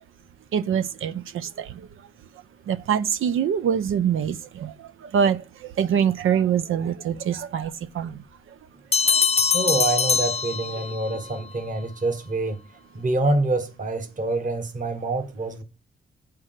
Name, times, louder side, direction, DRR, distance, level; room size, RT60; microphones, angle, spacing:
voice 1, 0.5-1.7 2.7-4.7 5.1-8.2 9.1-9.2, right 8 dB, 85° right, 0.7 m, -24 dB
Bell, 8.9-11.2, left 6 dB, 30° left, 0.6 m, -22 dB
voice 2, 9.5-12.6 12.9-15.6, right 2 dB, 40° right, 1.6 m, -26 dB
8.8 x 4.8 x 7.5 m
cardioid pair, 95°, 20 cm